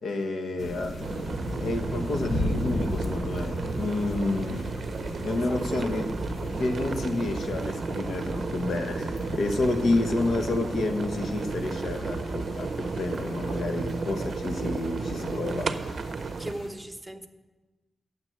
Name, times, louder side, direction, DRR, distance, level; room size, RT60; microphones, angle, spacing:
voice 1, 0.0-4.6 5.2-6.1 6.6-16.0, left 2 dB, 85° left, 5 dB, 1.3 m, -29 dB
sound 1, 0.6-16.7, left 1 dB, 65° left, 1.6 m, -36 dB
sound 2, 1.0-16.5, right 4 dB, 55° right, 0.6 m, -34 dB
voice 2, 16.4-17.3, right 1 dB, 5° right, 5 dB, 0.8 m, -38 dB
9.4 x 7.4 x 9.1 m, 1.2 s
wide cardioid pair, 155°, 0 cm